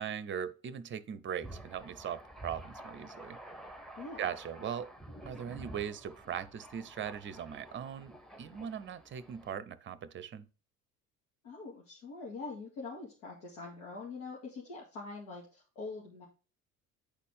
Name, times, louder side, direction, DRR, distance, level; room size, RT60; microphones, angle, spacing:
voice 1, 0.0-3.4 4.2-4.9 5.3-8.1 8.4-10.5, right 8 dB, 30° right, 0.7 m, -39 dB
Thunder, 1.4-9.5, right 1 dB, ahead, 1.2 m, -50 dB
voice 2, 11.4-16.3, left 3 dB, 70° left, 2.3 m, -44 dB
9.9 x 4.2 x 3.5 m
hypercardioid pair, 65°, 41 cm